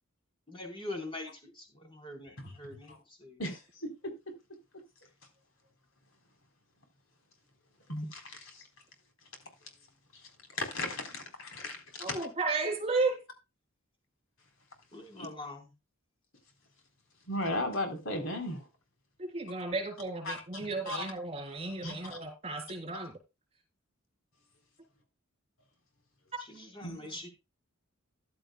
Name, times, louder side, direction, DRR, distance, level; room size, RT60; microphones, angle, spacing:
voice 1, 0.5-3.0 3.2-3.4 14.9-15.6 26.5-27.3, left 2 dB, 25° left, 4.1 m, -43 dB
voice 2, 3.4-4.3 7.9-8.6 10.1-12.2 15.2-15.3 17.3-18.7 20.2-21.0 21.8-22.2 26.8-27.2, left 1 dB, 65° left, 3.9 m, -37 dB
voice 3, 12.0-13.2 19.2-23.1, right 3 dB, 30° right, 3.5 m, -33 dB
14.5 x 11.5 x 2.2 m
head